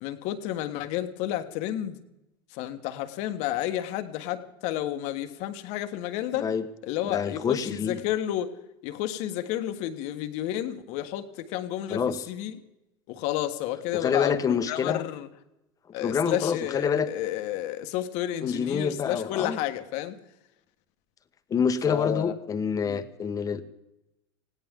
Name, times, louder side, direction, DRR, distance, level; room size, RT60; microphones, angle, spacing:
voice 1, 0.0-2.0 2.5-6.5 6.8-8.6 8.8-12.5 13.1-15.3 15.9-20.2 21.8-22.3 22.8-23.0, left 13 dB, 60° left, 9 dB, 1.5 m, -31 dB
voice 2, 7.0-8.0 11.9-12.2 13.9-15.0 16.0-17.1 18.4-19.6 21.5-23.6, left 6 dB, 25° left, 10 dB, 1.3 m, -27 dB
19.5 x 17.0 x 3.7 m, 0.91 s
supercardioid pair, 110°, 13 cm